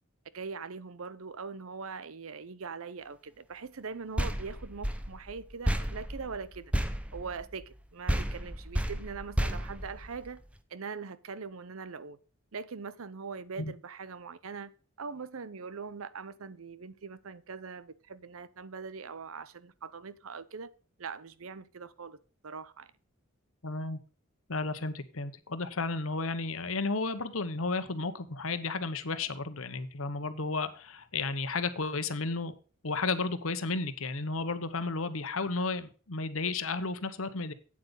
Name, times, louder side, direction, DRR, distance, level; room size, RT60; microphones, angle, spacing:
voice 1, 0.3-6.7 7.1-10.4 10.7-12.2 12.5-20.7 21.0-22.2 22.4-22.9, right 5 dB, 85° right, 0.7 m, -42 dB
books banging on a door, 4.2-7.8 8.1-10.5, equal, 5° right, 0.6 m, -32 dB
voice 2, 23.6-24.0 24.5-32.5 32.8-37.5, left 3 dB, 80° left, 1.1 m, -33 dB
8.8 x 8.0 x 5.2 m
head